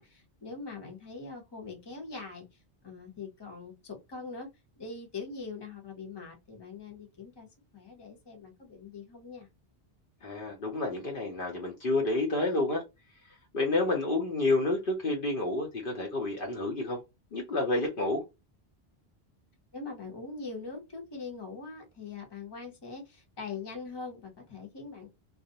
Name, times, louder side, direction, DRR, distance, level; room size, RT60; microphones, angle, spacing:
voice 1, 0.0-4.5 4.8-7.5 7.7-9.5 19.7-25.1, left 4 dB, 25° left, 0.8 m, -42 dB
voice 2, 10.2-12.8 13.5-17.0 17.3-18.2, left 2 dB, 60° left, 0.8 m, -29 dB
2.3 x 2.1 x 2.6 m
omnidirectional pair, 1.1 m